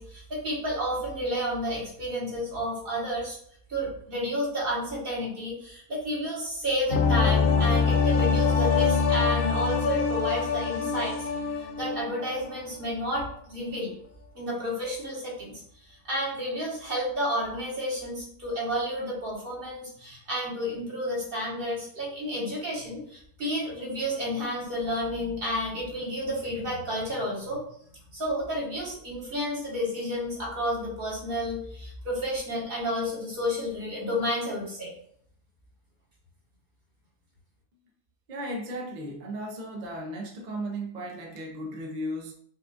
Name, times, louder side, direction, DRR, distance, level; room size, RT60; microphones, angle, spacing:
voice 1, 0.0-3.4 3.7-11.2 11.6-13.9 14.3-15.6 16.0-27.6 28.1-34.9, equal, 40° right, -5 dB, 1.4 m, -31 dB
sound 1, 6.9-12.5 12.8-12.9, left 5 dB, 75° left, 0.4 m, -24 dB
voice 2, 38.3-42.3, right 1 dB, 65° right, 1 dB, 0.4 m, -35 dB
5.5 x 2.5 x 2.4 m, 0.64 s
omnidirectional pair, 1.5 m